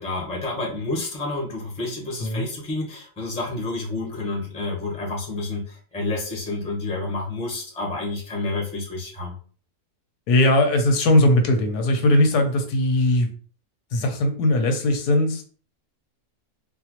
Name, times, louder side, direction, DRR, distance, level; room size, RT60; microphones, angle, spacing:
voice 1, 0.0-9.4, left 2 dB, 5° left, -1 dB, 0.7 m, -29 dB
voice 2, 10.3-13.3 13.9-15.4, left 1 dB, 85° left, 5 dB, 1.3 m, -19 dB
4.1 x 2.2 x 3.0 m, 0.41 s
omnidirectional pair, 1.6 m